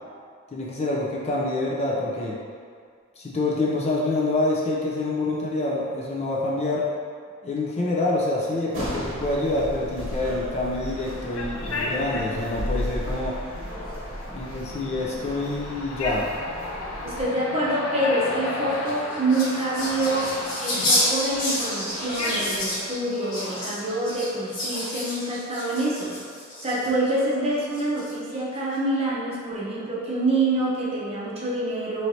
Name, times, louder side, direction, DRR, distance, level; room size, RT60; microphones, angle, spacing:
voice 1, 0.5-2.4 3.2-6.9 7.4-13.4 14.3-16.3, left 2 dB, 30° left, -4 dB, 0.5 m, -26 dB
sound 1, 8.7-17.2, equal, 70° right, 0.8 m, -34 dB
sound 2, 10.9-22.6, left 2 dB, 85° left, 0.6 m, -34 dB
voice 2, 17.0-20.3 20.6-26.1 26.6-32.1, right 1 dB, 30° right, -7 dB, 0.8 m, -26 dB
sound 3, 18.7-27.1 27.7-28.3, left 1 dB, 65° left, 1.4 m, -29 dB
4.4 x 3.1 x 2.7 m, 2.1 s
head